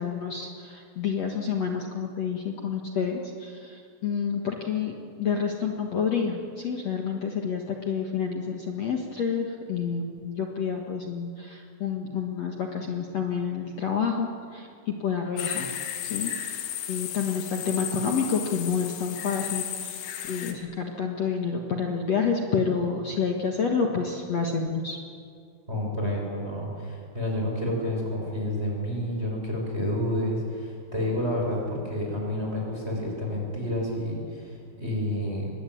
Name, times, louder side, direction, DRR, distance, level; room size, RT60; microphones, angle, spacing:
voice 1, 0.0-15.7 16.0-16.6 16.9-25.0, left 6 dB, 60° left, 1 dB, 1.7 m, -29 dB
sound 1, 15.4-20.5, left 10 dB, 85° left, 4.1 m, -34 dB
voice 2, 25.7-35.5, left 1 dB, 15° right, -2 dB, 6.2 m, -29 dB
25.5 x 20.5 x 9.4 m, 2.3 s
omnidirectional pair, 5.4 m